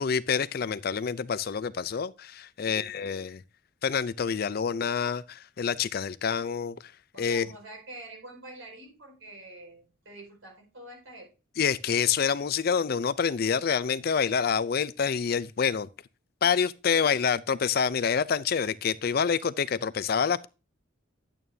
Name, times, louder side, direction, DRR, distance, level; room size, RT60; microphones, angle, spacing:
voice 1, 0.0-3.4 3.8-6.8 7.2-7.5 11.6-15.9 16.4-20.5, left 6 dB, 50° left, 0.4 m, -27 dB
voice 2, 2.6-3.1 7.1-11.3, right 1 dB, 80° right, 5.1 m, -46 dB
11.0 x 8.9 x 2.7 m
head